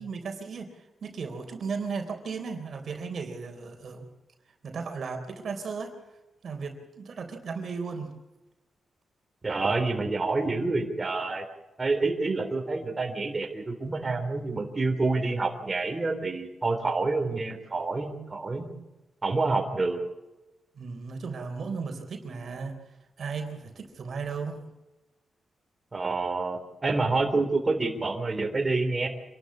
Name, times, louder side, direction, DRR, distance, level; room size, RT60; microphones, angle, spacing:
voice 1, 0.0-4.1 4.6-6.0 6.4-8.1 20.8-22.8 23.2-24.7, right 5 dB, 60° right, 5 dB, 3.7 m, -35 dB
voice 2, 9.4-11.5 11.8-18.7 19.2-20.0 25.9-29.1, right 3 dB, 30° right, 3 dB, 3.7 m, -28 dB
26.5 x 12.5 x 8.5 m, 1.0 s
cardioid pair, 90°, 0 cm